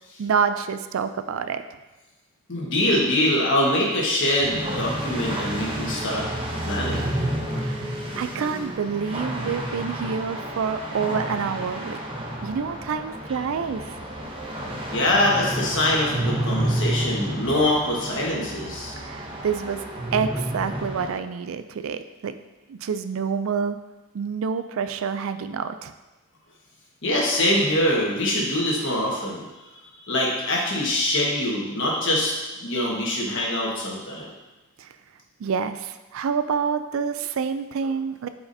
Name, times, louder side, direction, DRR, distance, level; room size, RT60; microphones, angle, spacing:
voice 1, 0.2-1.6 7.6-12.0 12.4-14.0 19.0-22.4 22.7-23.8 24.1-25.9 34.8-34.9 35.4-38.3, right 6 dB, 65° right, 10 dB, 0.3 m, -27 dB
voice 2, 2.5-6.2 6.6-7.0 14.9-18.9 27.0-29.4 30.1-32.3 32.6-34.3, left 1 dB, 55° left, -3 dB, 1.4 m, -23 dB
sound 1, 4.4-21.1, right 1 dB, 25° right, 0.7 m, -30 dB
8.5 x 4.8 x 2.7 m, 1.1 s
head